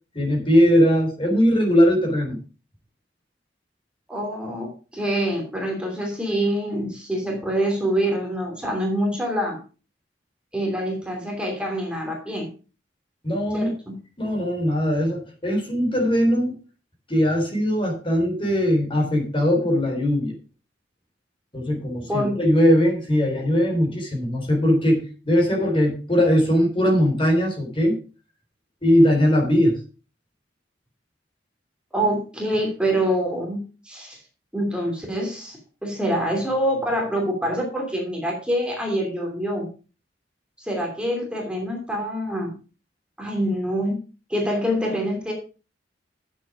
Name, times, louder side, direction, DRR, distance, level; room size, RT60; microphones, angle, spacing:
voice 1, 0.1-2.4 13.2-13.7 14.2-16.6 17.1-20.4 21.5-28.0 28.8-29.8, equal, 30° left, 1 dB, 3.8 m, -20 dB
voice 2, 4.1-9.6 10.5-12.5 13.5-14.0 22.1-22.4 31.9-34.2 34.5-39.7 40.6-42.5 43.2-44.0 44.3-45.3, equal, 5° right, 0 dB, 2.9 m, -25 dB
10.0 x 8.1 x 4.8 m, 0.35 s
head